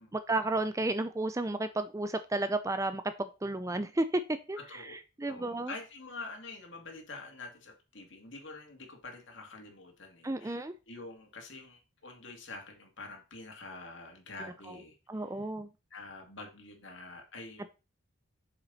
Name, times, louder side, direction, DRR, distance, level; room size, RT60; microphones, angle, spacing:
voice 1, 0.1-4.2 4.5-5.7 10.2-10.7 15.1-15.7, right 2 dB, 15° right, 11 dB, 0.4 m, -32 dB
voice 2, 4.6-4.9 5.3-10.6 10.9-15.2 15.9-17.7, left 3 dB, 60° left, 3 dB, 2.3 m, -46 dB
7.4 x 6.9 x 4.0 m, 0.30 s
head